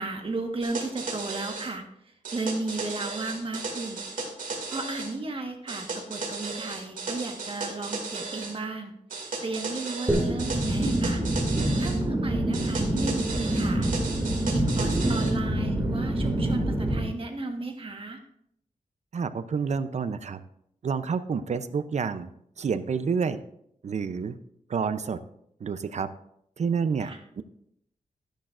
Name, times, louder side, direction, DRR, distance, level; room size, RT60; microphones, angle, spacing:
voice 1, 0.0-1.8 2.3-4.0 4.7-8.9 9.4-11.2 11.8-14.0 14.4-18.2 27.0-27.2, right 3 dB, 40° right, 4 dB, 1.4 m, -34 dB
sound 1, 0.6-1.7 2.2-5.1 5.7-8.5 9.1-12.0 12.5-15.3, right 3 dB, 85° right, 2.3 m, -35 dB
sound 2, 10.1-17.0, right 1 dB, 15° right, 2.5 m, -26 dB
voice 2, 19.1-20.4 20.8-22.3 22.6-23.4 23.8-24.4 24.7-25.2 25.6-26.1 26.6-27.4, right 6 dB, 55° right, 12 dB, 0.6 m, -29 dB
12.5 x 10.0 x 2.5 m, 0.73 s
wide cardioid pair, 100°, 14 cm